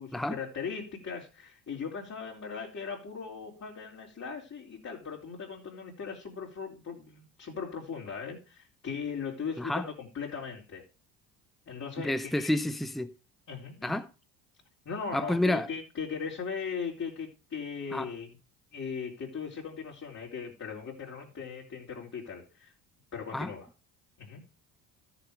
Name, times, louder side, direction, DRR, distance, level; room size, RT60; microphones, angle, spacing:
voice 1, 0.0-10.8 11.7-12.5 13.5-14.0 14.9-18.3 18.7-22.7 23.1-23.7 24.2-24.4, left 6 dB, 35° left, 3.9 m, -38 dB
voice 2, 12.0-13.1 13.8-14.1 15.1-15.7 17.9-18.1 23.3-23.5, left 1 dB, ahead, 1.0 m, -29 dB
13.5 x 7.1 x 5.1 m
hypercardioid pair, 70°, 46 cm